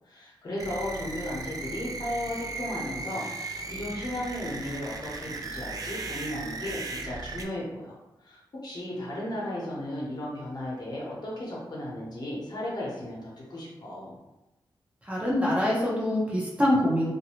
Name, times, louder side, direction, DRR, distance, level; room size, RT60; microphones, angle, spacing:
voice 1, 0.1-3.2 3.6-8.0 8.2-14.1, left 1 dB, 55° left, -5 dB, 1.0 m, -35 dB
sound 1, 0.6-7.4, right 3 dB, 45° right, 0.3 m, -37 dB
voice 2, 15.1-17.1, left 1 dB, 15° right, -6 dB, 0.7 m, -24 dB
2.6 x 2.2 x 2.9 m, 0.98 s
wide cardioid pair, 90°, 9 cm